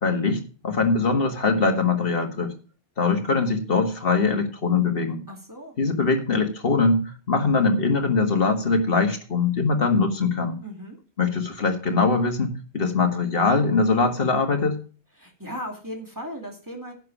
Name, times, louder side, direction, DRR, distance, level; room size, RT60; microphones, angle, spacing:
voice 1, 0.0-2.5 3.0-5.2 5.8-7.0 7.3-10.6 11.2-14.8, left 4 dB, 65° left, 5 dB, 1.9 m, -22 dB
voice 2, 5.3-5.8 10.6-11.0 15.2-16.9, equal, 20° right, 1 dB, 2.6 m, -36 dB
10.5 x 6.7 x 6.0 m, 0.37 s
omnidirectional pair, 1.1 m